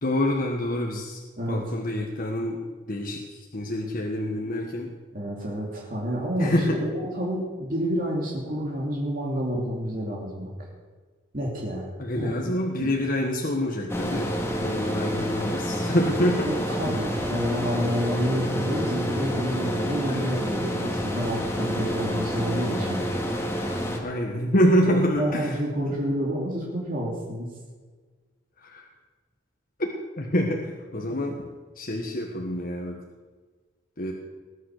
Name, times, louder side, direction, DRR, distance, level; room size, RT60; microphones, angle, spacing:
voice 1, 0.0-1.2 1.5-2.6 2.9-4.9 6.4-6.8 12.0-14.3 14.6-16.5 20.1-20.2 24.0-25.6 25.8-26.0 28.6-28.9 29.8-29.9 30.2-31.5 31.7-33.0 34.0-34.1, equal, 45° left, 0 dB, 1.5 m, -26 dB
voice 2, 5.1-10.7 11.3-11.9 12.2-12.5 12.8-13.1 16.4-23.0 24.9-27.5, equal, 45° right, -3 dB, 2.9 m, -29 dB
sound 1, 13.9-24.0, equal, 15° left, 2.1 m, -28 dB
20.0 x 9.4 x 6.6 m, 1.4 s
head